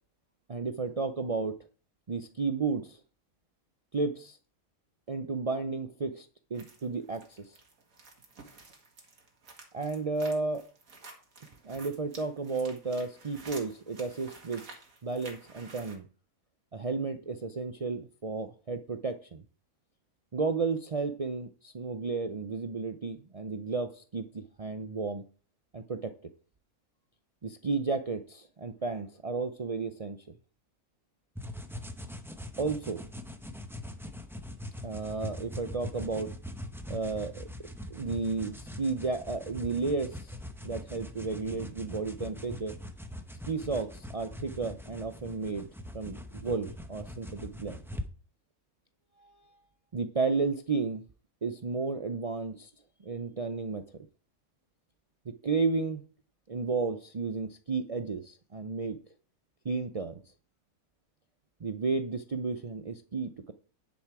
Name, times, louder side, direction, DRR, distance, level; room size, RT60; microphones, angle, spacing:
voice 1, 0.5-1.5 2.1-3.0 3.9-4.4 5.1-7.6 9.7-10.6 11.6-14.6 15.0-16.0 16.7-19.4 20.3-25.2 25.7-26.1 27.4-30.2 32.6-33.0 34.8-36.3 36.9-37.5 37.9-40.4 40.6-42.7 43.5-45.7 45.9-47.8 49.9-51.0 51.4-52.7 53.0-54.0 55.3-56.0 56.5-59.0 59.6-60.1 61.6-63.5, right 4 dB, 55° right, 7 dB, 0.4 m, -33 dB
sound 1, 6.5-16.0, right 3 dB, 75° right, 2.3 m, -51 dB
sound 2, 31.4-48.1, left 1 dB, ahead, 0.6 m, -42 dB
9.8 x 7.0 x 4.8 m, 0.39 s
omnidirectional pair, 1.5 m